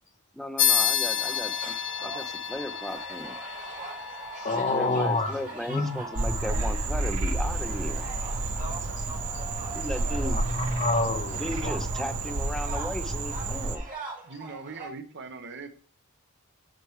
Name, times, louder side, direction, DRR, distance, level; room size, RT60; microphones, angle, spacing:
voice 1, 0.3-1.7 2.0-3.4 4.6-8.1 9.7-10.4 11.4-13.9, left 1 dB, ahead, 0.6 m, -36 dB
sound 1, 0.6-10.5, left 8 dB, 55° left, 0.8 m, -32 dB
sound 2, 1.0-14.9, right 3 dB, 40° right, 2.2 m, -42 dB
voice 2, 4.3-5.3 5.7-6.5 8.7-9.4 10.3-11.7, left 2 dB, 35° left, 1.0 m, -29 dB
Frog, 6.1-13.8, right 2 dB, 75° right, 0.8 m, -30 dB
voice 3, 14.2-15.7, right 4 dB, 55° right, 1.0 m, -40 dB
7.9 x 6.1 x 3.2 m
head